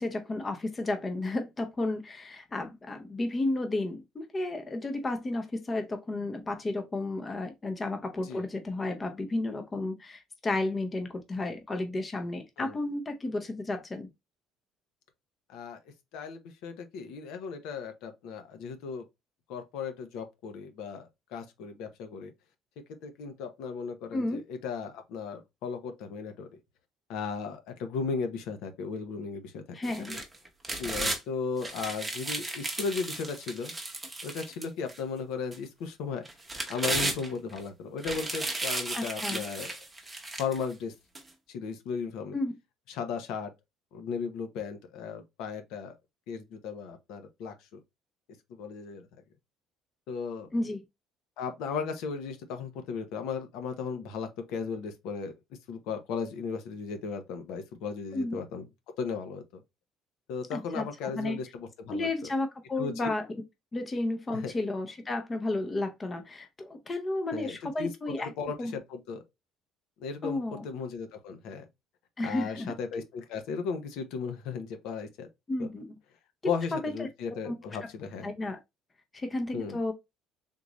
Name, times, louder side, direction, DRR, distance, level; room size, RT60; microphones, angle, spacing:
voice 1, 0.0-14.1 24.1-24.4 29.7-30.2 38.9-39.4 42.3-42.5 50.5-50.8 58.1-58.4 60.5-61.4 61.9-63.2 63.7-68.3 68.6-68.8 70.2-70.6 72.2-72.7 75.5-76.0 76.4-77.1 77.5-77.6 78.2-78.6 79.1-79.9, left 2 dB, 20° left, 0.6 m, -32 dB
voice 2, 15.5-15.8 16.1-19.0 19.5-22.3 23.0-26.5 27.1-29.8 30.1-30.2 30.8-33.7 34.2-36.2 36.7-39.8 40.4-40.9 41.5-42.4 42.9-43.5 43.9-46.0 46.3-47.8 48.5-49.1 50.1-50.5 51.4-55.3 55.7-58.7 59.0-59.6 60.3-62.1 62.8-63.1 63.8-63.9 64.3-64.5 67.3-69.2 70.0-71.7 72.2-75.3 75.6-75.7 76.4-78.3 79.5-79.8, left 5 dB, 80° left, 0.8 m, -36 dB
sound 1, 29.8-31.2 31.6-35.0 35.5-35.6 36.2-37.6 38.0-40.6 41.1-41.2, right 2 dB, 15° right, 0.8 m, -34 dB
3.7 x 2.5 x 3.0 m
cardioid pair, 140°, 0 cm